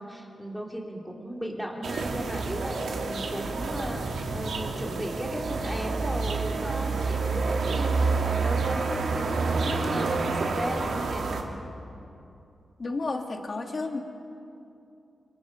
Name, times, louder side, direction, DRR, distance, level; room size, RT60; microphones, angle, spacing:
voice 1, 0.0-11.3, equal, ahead, -1 dB, 2.6 m, -36 dB
sound 1, 1.8-11.4, right 4 dB, 80° right, 2.6 m, -28 dB
voice 2, 12.8-14.0, left 3 dB, 35° left, 3 dB, 2.2 m, -31 dB
29.0 x 27.0 x 5.1 m, 2.6 s
wide cardioid pair, 155°, 0 cm